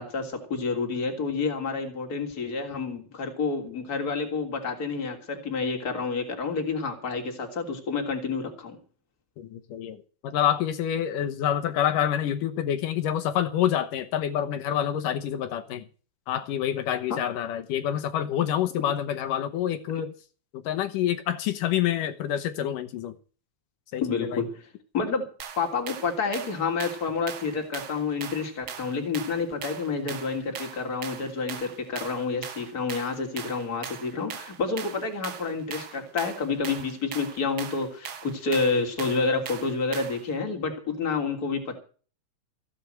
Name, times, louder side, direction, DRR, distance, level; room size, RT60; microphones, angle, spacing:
voice 1, 0.0-8.8 17.1-17.2 24.0-24.6 24.9-25.3 25.6-41.8, left 4 dB, 25° left, 3 dB, 3.3 m, -29 dB
voice 2, 9.4-15.8 16.3-20.1 20.5-23.1 23.9-24.4, left 10 dB, 70° left, 9 dB, 2.4 m, -27 dB
sound 1, 25.4-40.3, right 8 dB, 60° right, 1.3 m, -40 dB
15.5 x 8.5 x 7.8 m, 0.39 s
omnidirectional pair, 4.3 m